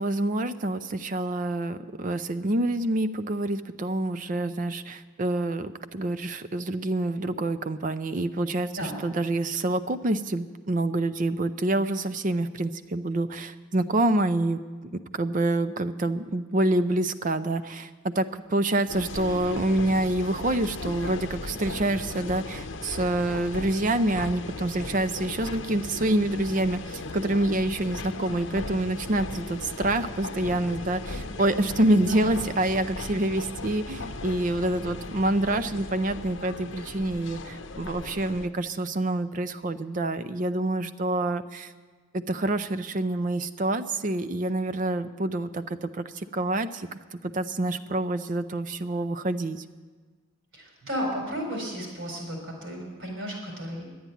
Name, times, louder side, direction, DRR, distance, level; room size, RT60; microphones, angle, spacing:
voice 1, 0.0-41.7 42.1-49.6, right 1 dB, 40° right, 12 dB, 0.5 m, -27 dB
sound 1, 18.9-38.5, left 3 dB, 60° left, 0.8 m, -37 dB
voice 2, 32.0-32.3 50.5-53.8, equal, 65° right, 0 dB, 4.3 m, -33 dB
11.5 x 9.5 x 9.2 m, 1.4 s
head